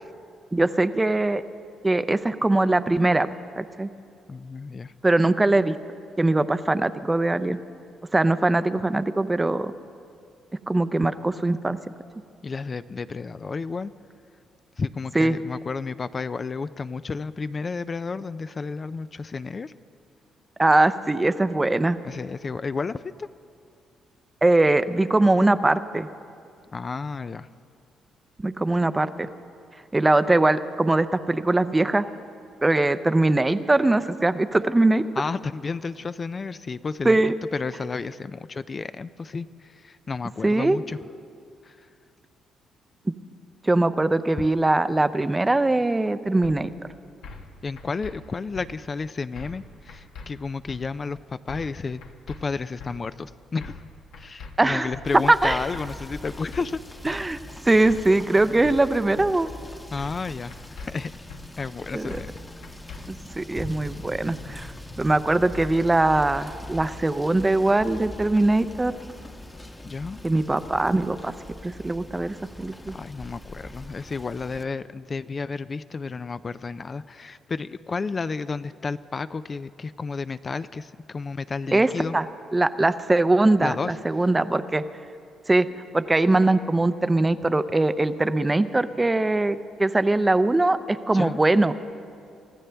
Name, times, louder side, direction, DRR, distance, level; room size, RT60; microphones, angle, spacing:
voice 1, 0.5-1.4 1.8-3.3 3.6-3.9 5.0-5.8 6.2-7.6 8.1-9.7 10.7-11.8 15.1-15.4 20.6-22.0 24.4-26.1 28.4-29.3 29.9-32.0 32.6-35.0 37.0-37.3 40.4-40.8 43.1-43.2 43.6-46.7 54.6-54.9 55.3-55.6 57.0-57.4 57.7-59.5 61.9-62.2 63.1-64.7 65.0-68.9 70.2-71.3 71.6-73.0 81.7-82.3 82.5-84.8 85.5-85.7 85.9-91.7, right 2 dB, 15° right, 13 dB, 0.5 m, -21 dB
voice 2, 4.3-4.9 12.4-13.9 14.8-19.7 22.0-23.3 26.7-27.5 35.2-41.0 41.6-41.9 44.4-44.5 47.6-52.0 52.3-53.8 54.2-56.8 59.9-61.1 61.6-62.3 69.8-70.2 72.9-82.2 83.6-84.2 91.1-91.4, left 4 dB, 35° left, 13 dB, 0.4 m, -32 dB
sound 1, 46.4-46.6 47.2-47.5 47.8-48.1 48.5-48.7 49.4-49.6 49.9-50.3 50.7-50.8 51.5-51.8 52.0-52.4 52.8-52.9 53.6-53.9 54.1-54.5 54.9-55.0 55.7-56.0 56.3-56.6 57.0-57.2 57.9-58.1 58.4-58.8 59.2-59.3 60.0-60.2 60.5-60.9 61.3-61.4 62.1-62.4 62.6-63.0, left 4 dB, 85° left, 1.3 m, -41 dB
Rain / Motor vehicle (road), 55.0-74.6, left 1 dB, 15° left, 1.0 m, -41 dB
24.5 x 14.5 x 3.4 m, 2.4 s
cardioid pair, 90°, 0 cm